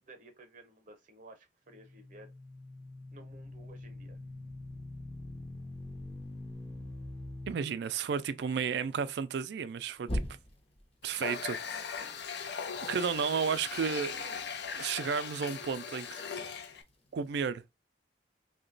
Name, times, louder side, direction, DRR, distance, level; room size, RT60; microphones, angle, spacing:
voice 1, 0.0-2.3 3.1-4.2 12.6-12.9, right 2 dB, 45° right, 0.8 m, -55 dB
sound 1, 1.7-7.5 10.0-10.8, left 1 dB, 35° left, 0.7 m, -41 dB
voice 2, 7.5-10.2 11.0-11.6 12.9-14.4 14.7-16.3 17.1-17.6, right 6 dB, 65° right, 0.3 m, -33 dB
Water tap faucet, 11.0-16.8, left 6 dB, 65° left, 0.5 m, -39 dB
2.9 x 2.2 x 3.8 m
head